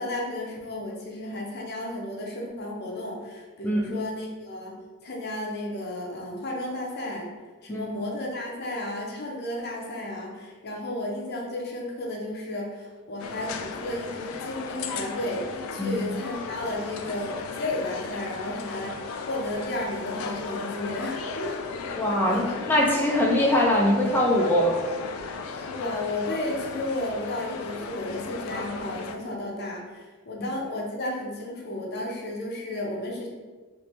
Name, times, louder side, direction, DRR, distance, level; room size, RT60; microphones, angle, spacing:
voice 1, 0.0-4.7 5.0-7.3 7.6-19.0 19.3-21.9 22.3-22.5 25.5-33.3, left 1 dB, 50° left, -1 dB, 0.6 m, -33 dB
voice 2, 3.6-3.9 7.7-7.9 15.8-16.0 22.0-24.7, left 1 dB, 10° left, -3 dB, 0.4 m, -22 dB
sound 1, 13.2-29.2, left 5 dB, 90° left, 0.3 m, -36 dB
3.2 x 2.6 x 2.8 m, 1.4 s
head